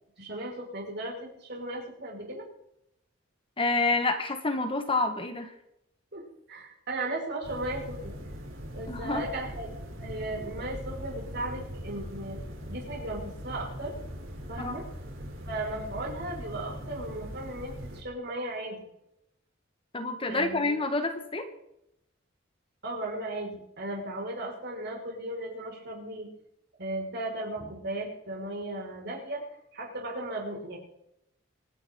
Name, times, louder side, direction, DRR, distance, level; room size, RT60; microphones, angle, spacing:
voice 1, 0.2-2.4 6.1-8.2 8.7-9.7 10.0-12.4 12.7-13.9 14.5-14.8 15.4-18.8 20.3-20.9 22.8-26.3 26.8-29.4 29.7-30.8, right 1 dB, 55° right, -1 dB, 6.0 m, -36 dB
voice 2, 3.6-5.5 8.9-9.2 14.6-14.8 19.9-21.5, left 3 dB, 25° left, 6 dB, 1.6 m, -28 dB
sound 1, 7.4-18.0, equal, 85° right, 3.9 m, -40 dB
26.0 x 10.5 x 4.0 m, 0.80 s
head